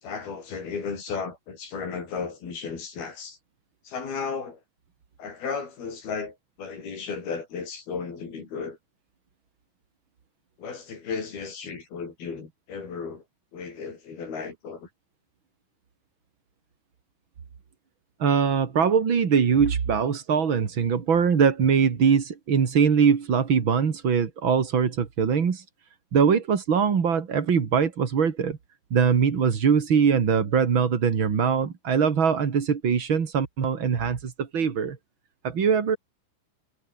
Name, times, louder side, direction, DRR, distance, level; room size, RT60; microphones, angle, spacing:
voice 1, 0.0-3.4 3.8-4.6 5.2-8.8 10.6-13.2 13.5-14.9, left 5 dB, 55° left, 6.5 m, -34 dB
voice 2, 18.2-25.6 26.1-28.6 28.9-35.0 35.4-36.0, right 6 dB, 45° right, 1.7 m, -22 dB
omnidirectional pair, 5.5 m